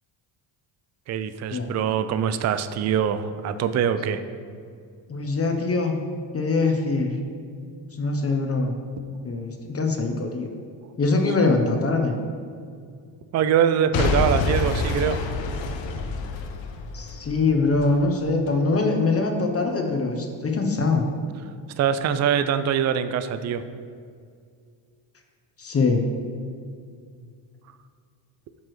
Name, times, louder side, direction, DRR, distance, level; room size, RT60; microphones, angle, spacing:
voice 1, 1.1-4.2 13.3-15.2 21.8-23.6, right 8 dB, 35° right, 11 dB, 0.4 m, -23 dB
voice 2, 5.1-6.0 6.3-7.1 7.9-8.8 9.2-10.5 11.0-12.2 16.9-21.0 25.6-26.0, left 3 dB, 30° left, 3 dB, 0.8 m, -23 dB
Boom / Shatter / Crushing, 13.9-17.9 18.5-18.6, left 3 dB, 65° left, 1.0 m, -27 dB
9.0 x 6.0 x 3.2 m, 2.2 s
supercardioid pair, 85°, 49 cm